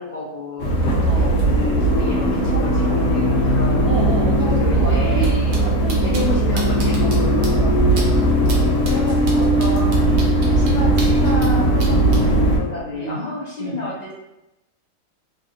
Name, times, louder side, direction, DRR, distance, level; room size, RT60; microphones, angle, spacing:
voice 1, 0.0-3.9 4.4-5.3 6.0-7.1 8.8-14.1, left 2 dB, 90° left, -7 dB, 0.3 m, -30 dB
sound 1, 0.6-12.6, right 1 dB, 65° left, 0.9 m, -18 dB
voice 2, 1.0-1.3 3.8-6.7 7.0-8.7 10.5-10.8 12.9-13.2 13.6-13.8, right 2 dB, 90° right, -7 dB, 1.2 m, -30 dB
sound 2, 5.2-5.3 5.5-5.6 5.9-6.2 6.6-7.2 7.4-7.5 8.0-8.1 8.4-8.6 8.8-11.5 11.8-12.2, right 3 dB, 55° right, 0.6 m, -33 dB
3.2 x 2.6 x 2.5 m, 0.95 s
omnidirectional pair, 1.7 m